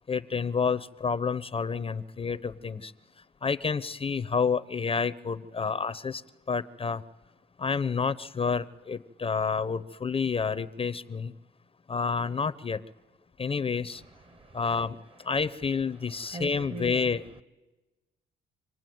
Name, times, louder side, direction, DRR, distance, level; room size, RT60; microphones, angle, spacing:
voice 1, 0.1-2.9 3.4-6.2 6.5-7.0 7.6-11.3 11.9-12.8 13.4-14.0 14.5-17.2, left 5 dB, 30° left, 0.7 m, -29 dB
voice 2, 14.0-14.6 15.3-15.4 16.1-17.4, right 2 dB, 25° right, 1.0 m, -43 dB
26.5 x 18.5 x 9.3 m
cardioid pair, 90°, 20 cm